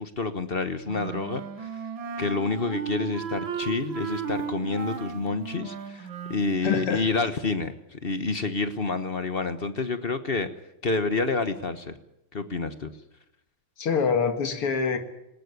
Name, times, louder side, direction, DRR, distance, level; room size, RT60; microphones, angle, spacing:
voice 1, 0.0-1.7 2.2-10.5 10.8-11.9 12.3-12.9, left 3 dB, 35° left, 10 dB, 1.0 m, -28 dB
Wind instrument woodwind instrument, 0.8-6.5, right 7 dB, 65° right, 2.1 m, -35 dB
voice 2, 6.6-7.1 13.8-15.0, left 6 dB, 80° left, 7 dB, 2.9 m, -25 dB
19.5 x 18.5 x 9.6 m, 0.86 s
omnidirectional pair, 2.4 m